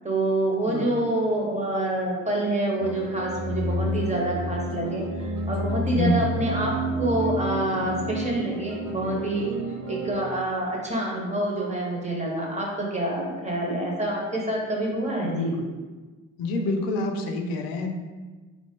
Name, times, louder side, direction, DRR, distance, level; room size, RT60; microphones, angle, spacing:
voice 1, 0.0-9.5 9.9-15.5, right 1 dB, 20° right, -2 dB, 1.1 m, -27 dB
sound 1, 2.8-10.1, right 1 dB, 75° right, 1.1 m, -30 dB
voice 2, 5.9-6.3 15.2-15.7 16.4-17.9, left 1 dB, 85° left, 4 dB, 0.6 m, -27 dB
4.0 x 2.9 x 3.6 m, 1.3 s
cardioid pair, 95°, 35 cm